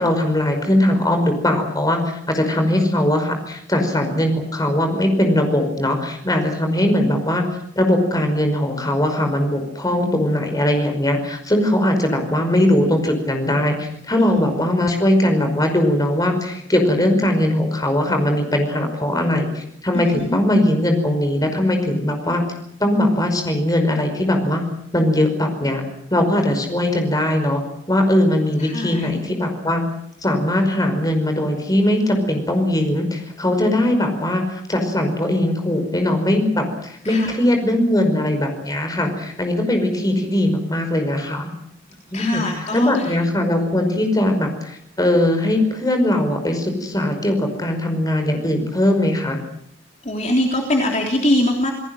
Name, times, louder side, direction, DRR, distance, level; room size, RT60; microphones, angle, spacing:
voice 1, 0.0-2.0 2.3-7.4 7.8-22.4 22.8-24.6 24.9-25.8 26.1-27.6 27.9-29.8 30.2-41.5 42.1-42.4 42.7-49.4, left 1 dB, 20° left, 5 dB, 5.3 m, -20 dB
voice 2, 19.9-20.4 28.6-29.2 37.0-37.4 42.1-43.2 50.0-51.7, left 1 dB, 40° left, 1 dB, 3.4 m, -22 dB
28.5 x 18.5 x 7.9 m, 0.72 s
head